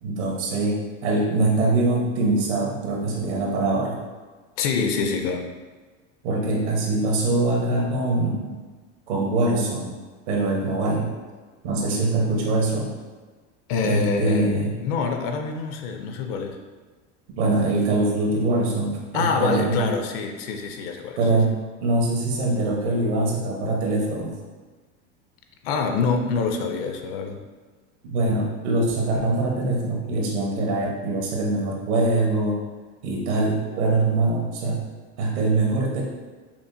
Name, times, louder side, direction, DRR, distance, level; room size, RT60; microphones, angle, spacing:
voice 1, 0.0-4.0 6.2-8.5 9.1-10.0 10.3-11.1 11.6-12.9 13.8-14.7 17.4-19.9 21.2-24.4 28.0-32.6 33.0-34.8 35.2-36.0, right 2 dB, 75° right, -1 dB, 1.1 m, -23 dB
voice 2, 4.6-5.4 13.7-16.6 19.1-21.2 25.6-27.4, left 5 dB, 60° left, 4 dB, 0.6 m, -25 dB
5.8 x 2.1 x 2.6 m, 1.4 s
supercardioid pair, 135°, 34 cm